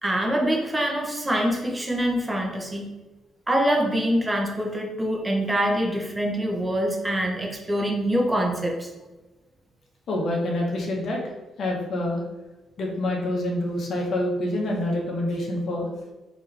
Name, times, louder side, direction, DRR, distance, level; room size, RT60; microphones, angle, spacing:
voice 1, 0.0-2.9 3.5-8.9, equal, 15° right, 1 dB, 0.8 m, -25 dB
voice 2, 10.1-11.2 11.6-12.2 12.8-15.9, left 1 dB, 60° left, 0 dB, 1.1 m, -26 dB
4.3 x 3.0 x 3.3 m, 1.1 s
cardioid pair, 90°, 0 cm